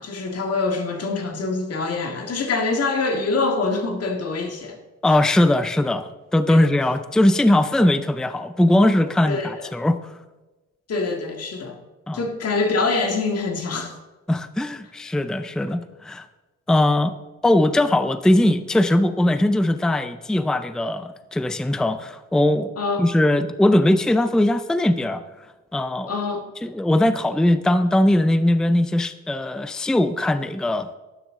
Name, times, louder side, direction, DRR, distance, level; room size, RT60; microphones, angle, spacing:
voice 1, 0.0-4.8 5.1-5.2 6.5-6.6 9.3-9.7 10.9-11.8 12.1-14.0 22.8-23.0 26.1-26.4, left 3 dB, 55° left, 1.9 m, -25 dB
voice 2, 5.0-10.1 12.1-12.2 14.3-16.3 16.7-17.1 17.4-22.7 23.0-25.2 25.7-26.1 26.6-30.9, left 1 dB, ahead, 0.5 m, -20 dB
12.0 x 10.5 x 3.7 m
cardioid pair, 90°, 30 cm